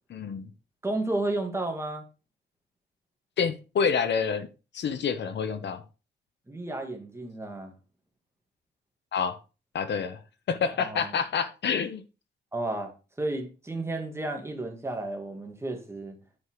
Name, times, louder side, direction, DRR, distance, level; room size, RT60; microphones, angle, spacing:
voice 1, 0.1-0.5 3.4-4.5 4.7-5.8 9.1-9.4 9.7-10.2 10.5-12.0, left 6 dB, 65° left, 0.9 m, -28 dB
voice 2, 0.8-2.0 6.5-7.7 10.8-11.1 12.5-12.9 13.2-16.2, right 2 dB, 15° right, 2.1 m, -32 dB
9.8 x 5.5 x 4.7 m
cardioid pair, 130°, 20 cm